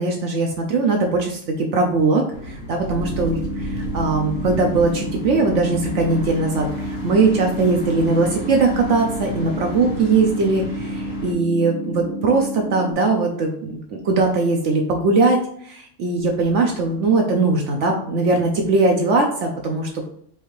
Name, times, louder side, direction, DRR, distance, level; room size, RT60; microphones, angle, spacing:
voice 1, 0.0-20.0, right 3 dB, 70° right, 1 dB, 1.0 m, -20 dB
sound 1, 2.3-11.3, right 1 dB, 80° left, 1.5 m, -33 dB
sound 2, 2.9-12.9, equal, 5° right, 0.5 m, -30 dB
5.0 x 2.7 x 3.1 m, 0.63 s
omnidirectional pair, 1.3 m